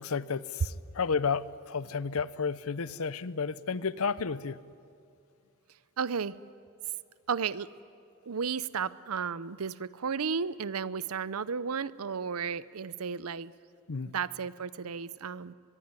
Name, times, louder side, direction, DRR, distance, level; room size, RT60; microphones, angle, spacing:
voice 1, 0.0-4.6 13.9-14.1, left 5 dB, 75° left, 18 dB, 0.7 m, -32 dB
voice 2, 6.0-6.4 7.3-7.7 8.3-13.5 14.1-15.5, right 6 dB, 80° right, 18 dB, 0.6 m, -33 dB
23.0 x 22.0 x 9.7 m, 2.5 s
head